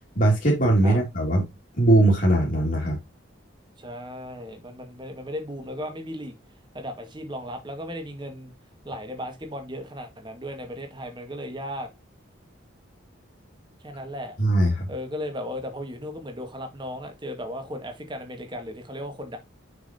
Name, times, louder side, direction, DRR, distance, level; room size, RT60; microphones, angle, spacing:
voice 1, 0.2-1.4 1.8-3.0 14.4-14.9, right 1 dB, 45° left, 2.3 m, -20 dB
voice 2, 3.8-6.3 6.7-8.5 8.8-11.9 13.8-14.3 14.9-19.4, equal, 25° right, 1.8 m, -36 dB
7.1 x 6.2 x 2.9 m
head